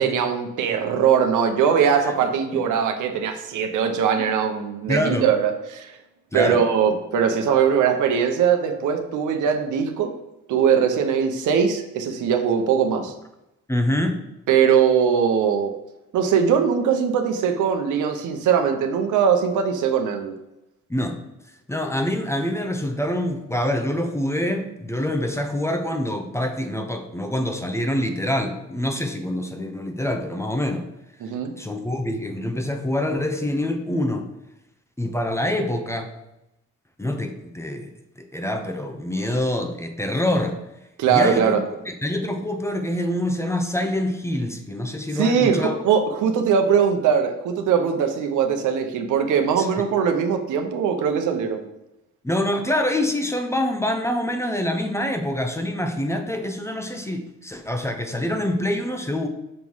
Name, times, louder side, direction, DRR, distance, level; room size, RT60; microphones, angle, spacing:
voice 1, 0.0-6.0 6.3-10.1 10.5-13.1 14.5-15.7 16.1-20.3 31.2-31.5 41.0-41.6 45.1-51.7, right 7 dB, 80° right, 5 dB, 0.9 m, -21 dB
voice 2, 4.9-5.3 6.3-6.6 13.7-14.1 20.9-21.2 21.7-30.8 31.6-34.3 35.0-36.1 37.0-37.9 38.2-40.6 41.1-41.6 41.9-45.8 49.6-49.8 52.2-59.3, left 1 dB, 10° left, 5 dB, 0.8 m, -25 dB
6.6 x 3.0 x 5.5 m, 0.90 s
cardioid pair, 90°, 30 cm